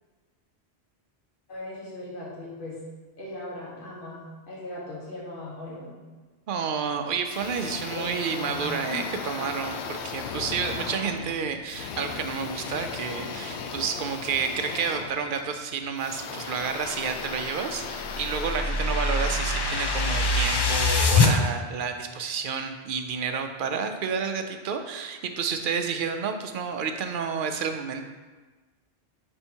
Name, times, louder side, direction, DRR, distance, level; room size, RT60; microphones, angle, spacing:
voice 1, 1.5-2.8 3.2-4.2 4.5-6.0 7.9-9.5, left 1 dB, 55° left, -6 dB, 1.5 m, -38 dB
voice 2, 6.5-28.1, right 6 dB, 60° right, 6 dB, 0.6 m, -30 dB
sound 1, 7.3-19.5, left 6 dB, 90° left, 0.8 m, -37 dB
sound 2, 17.4-21.3, left 3 dB, 40° left, 0.4 m, -24 dB
5.3 x 4.6 x 4.4 m, 1.3 s
omnidirectional pair, 1.1 m